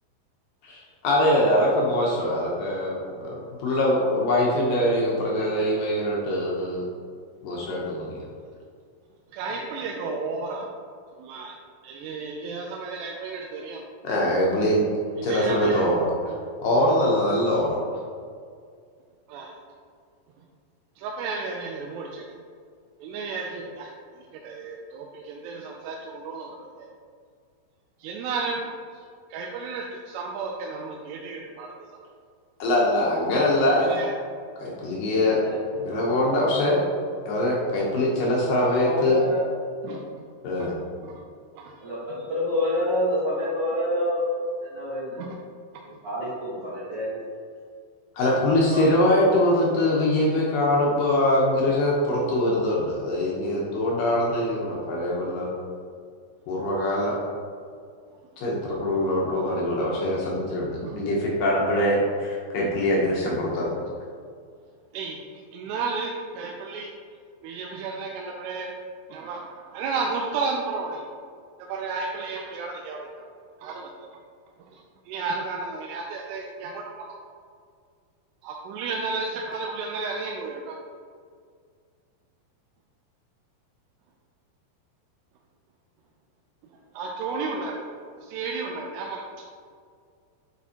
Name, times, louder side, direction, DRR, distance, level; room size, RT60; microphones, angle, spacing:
voice 1, 1.0-6.9 7.4-8.2 14.0-14.8 15.2-16.3 16.6-17.8 32.6-33.9 34.6-35.4 35.7-36.8 37.3-39.2 40.4-40.7 48.2-55.5 56.5-57.2 58.4-63.8, left 1 dB, 75° left, -4 dB, 2.1 m, -23 dB
voice 2, 5.1-5.7 9.5-10.1 35.2-35.6 38.7-39.4 41.8-41.9 42.3-44.4 44.7-45.2 46.0-47.2 48.2-48.8, left 1 dB, 65° right, -9 dB, 1.5 m, -28 dB
voice 3, 9.3-10.7 11.2-11.6 11.8-13.8 15.2-15.9 19.3-19.6 21.0-22.3 23.0-26.9 28.0-29.0 29.3-31.7 33.8-34.1 39.8-40.0 40.6-40.7 41.0-41.2 41.6-42.2 45.2-45.4 58.9-59.0 60.8-61.0 64.9-66.9 67.4-68.7 69.1-71.1 71.6-73.2 73.6-74.1 74.7-77.1 78.4-80.8 86.9-87.9 88.2-89.2, right 4 dB, 85° right, -1 dB, 2.6 m, -33 dB
9.0 x 4.2 x 2.8 m, 2.1 s
omnidirectional pair, 4.9 m